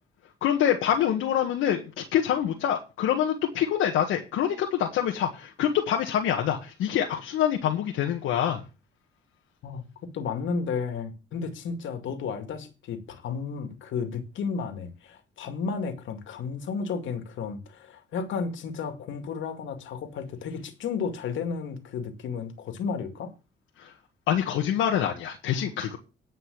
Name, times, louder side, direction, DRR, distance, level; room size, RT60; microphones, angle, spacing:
voice 1, 0.4-8.6 23.8-23.9 24.3-26.0, left 10 dB, 90° left, 1.6 m, -26 dB
voice 2, 10.1-23.3, left 5 dB, 75° left, 2.2 m, -33 dB
10.0 x 5.4 x 8.3 m
cardioid pair, 90°, 20 cm